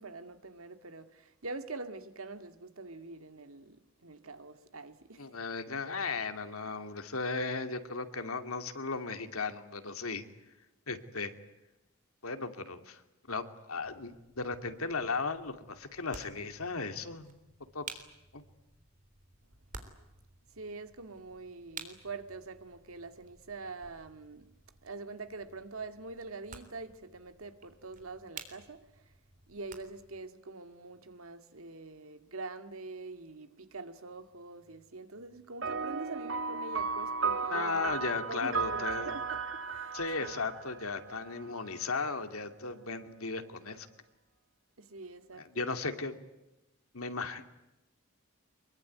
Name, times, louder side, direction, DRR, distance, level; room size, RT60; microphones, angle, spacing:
voice 1, 0.0-5.3 20.6-24.5 24.8-29.1 29.5-40.3 44.8-45.6, right 3 dB, 80° right, 2.1 m, -45 dB
voice 2, 5.2-10.2 10.9-11.3 12.2-13.0 13.3-17.3 17.7-17.8 18.3-18.4 37.5-39.1 39.9-43.9 45.4-46.2 46.9-47.5, left 4 dB, 85° left, 2.5 m, -36 dB
sound 1, 13.8-30.2, right 5 dB, 40° right, 3.5 m, -53 dB
sound 2, 35.6-41.4, right 5 dB, 65° right, 2.4 m, -35 dB
24.0 x 23.0 x 9.4 m
head